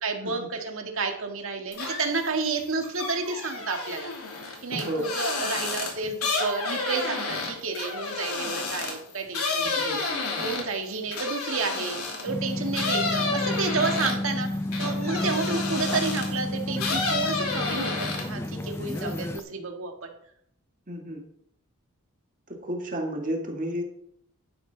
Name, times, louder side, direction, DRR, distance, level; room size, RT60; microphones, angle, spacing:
voice 1, 0.0-4.1 4.6-12.0 12.2-14.5 14.8-20.1, right 4 dB, 65° right, 3 dB, 1.9 m, -31 dB
sound 1, 1.7-2.3 2.6-12.3 12.7-16.4 16.8-18.5 18.8-19.4, left 3 dB, 80° left, 2.9 m, -30 dB
voice 2, 9.7-10.2 20.9-21.2 22.5-23.8, equal, 35° right, 2 dB, 1.9 m, -32 dB
sound 2, 12.3-19.4, left 1 dB, 10° left, 0.5 m, -31 dB
11.5 x 10.0 x 4.0 m, 0.70 s
head